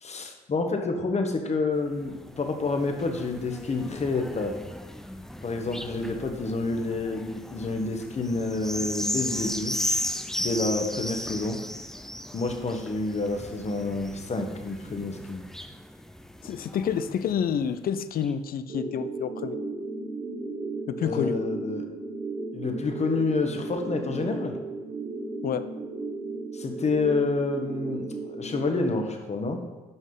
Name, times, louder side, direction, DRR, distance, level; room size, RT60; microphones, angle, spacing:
voice 1, 0.0-4.5 5.4-9.8 10.4-11.6 12.3-15.4 21.0-21.9 22.5-24.6 26.5-29.6, left 3 dB, 40° left, 4 dB, 1.3 m, -28 dB
sound 1, 1.8-17.6 18.2-18.3, equal, ahead, 0.6 m, -36 dB
voice 2, 16.4-19.6 20.9-21.4 25.4-25.6, left 8 dB, 55° left, 12 dB, 0.6 m, -28 dB
sound 2, 18.7-28.7, right 3 dB, 50° right, 1.7 m, -35 dB
8.2 x 5.4 x 3.9 m, 1.2 s
hypercardioid pair, 55°, 18 cm